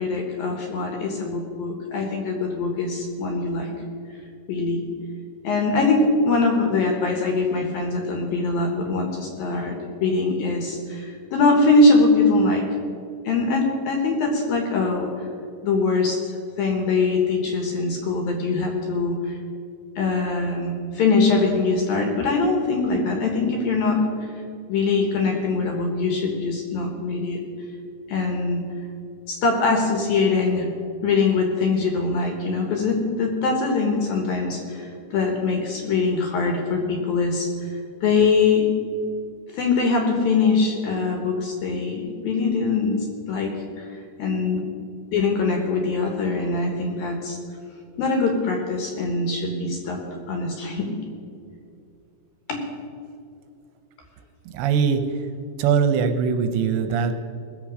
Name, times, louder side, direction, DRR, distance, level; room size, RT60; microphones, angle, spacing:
voice 1, 0.0-3.7 4.5-4.8 5.4-12.6 13.2-15.1 15.6-16.2 16.6-19.4 20.0-24.1 24.7-27.4 28.1-28.6 29.3-30.7 31.0-37.5 38.0-38.7 39.5-43.0 43.3-43.9 44.2-44.7 45.1-47.4 48.0-50.0 50.3-50.9 52.5-52.6, left 3 dB, 65° left, 2 dB, 2.7 m, -22 dB
voice 2, 54.5-55.3 55.6-57.1, right 6 dB, 80° right, 8 dB, 2.8 m, -21 dB
20.0 x 7.5 x 6.2 m, 2.5 s
omnidirectional pair, 5.3 m